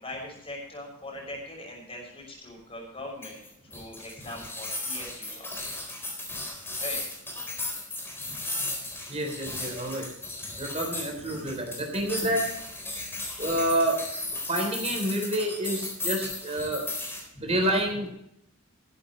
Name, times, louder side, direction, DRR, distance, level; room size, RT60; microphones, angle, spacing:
voice 1, 0.0-5.5 6.8-7.0 8.2-8.4 9.4-9.6 11.3-11.6 17.3-17.5, left 1 dB, 25° left, 1 dB, 6.3 m, -41 dB
sound 1, 3.2-17.2, left 2 dB, 10° left, 3.9 m, -35 dB
voice 2, 9.1-10.1 10.6-12.5 13.4-14.0 14.5-16.8 17.4-18.1, right 1 dB, 30° right, 3 dB, 3.5 m, -28 dB
15.0 x 13.5 x 3.2 m, 0.78 s
head